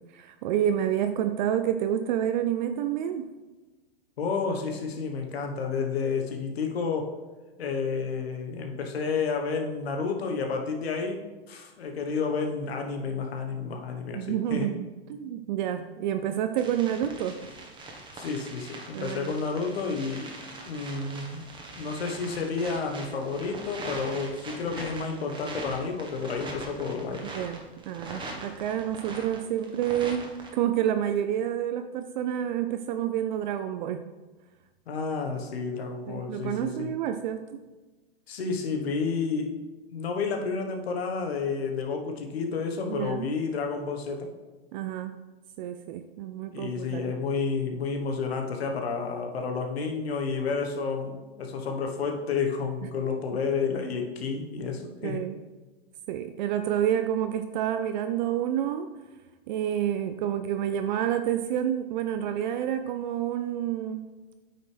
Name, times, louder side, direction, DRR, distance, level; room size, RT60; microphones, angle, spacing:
voice 1, 0.1-3.3 14.1-17.4 18.9-19.3 27.2-34.0 36.1-37.5 42.9-43.3 44.7-45.1 45.6-47.0 53.8-53.9 55.0-55.4 56.1-58.9 59.5-64.1, right 10 dB, 45° right, 8 dB, 0.5 m, -29 dB
voice 2, 4.2-7.1 7.6-11.2 11.5-14.7 18.1-20.3 20.6-21.4 21.8-27.3 34.9-36.9 38.3-39.5 39.9-44.3 46.5-55.2, left 5 dB, 75° left, 3 dB, 1.3 m, -30 dB
sound 1, 16.6-30.5, right 2 dB, 15° right, 1.3 m, -42 dB
9.0 x 5.8 x 3.3 m, 1.2 s
hypercardioid pair, 125°, 31 cm